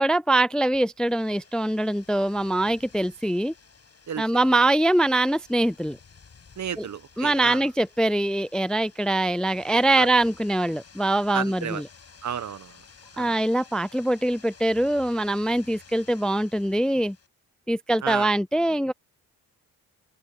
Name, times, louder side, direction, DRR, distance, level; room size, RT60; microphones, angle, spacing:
voice 1, 0.0-3.5 4.2-6.0 7.2-11.8 13.2-17.2 17.7-18.9, right 1 dB, ahead, 0.4 m, -23 dB
sound 1, 0.7-17.3, left 5 dB, 45° left, 5.9 m, -53 dB
voice 2, 6.6-7.7 10.0-10.1 11.3-11.8 12.2-12.8 13.1-13.4 18.0-18.3, right 8 dB, 55° right, 1.0 m, -32 dB
cardioid pair, 75°, 35 cm